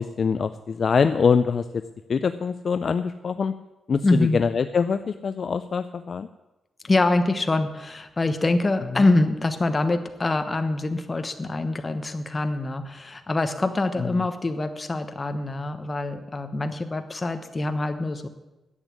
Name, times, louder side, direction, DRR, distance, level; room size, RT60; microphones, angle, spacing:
voice 1, 0.0-1.8 2.1-3.5 3.9-6.3 8.9-9.1 14.0-14.2, left 6 dB, 40° left, 10 dB, 0.4 m, -24 dB
voice 2, 4.0-4.4 6.8-18.3, left 2 dB, 20° left, 8 dB, 1.1 m, -24 dB
11.0 x 8.2 x 9.6 m, 1.0 s
wide cardioid pair, 165°, 0 cm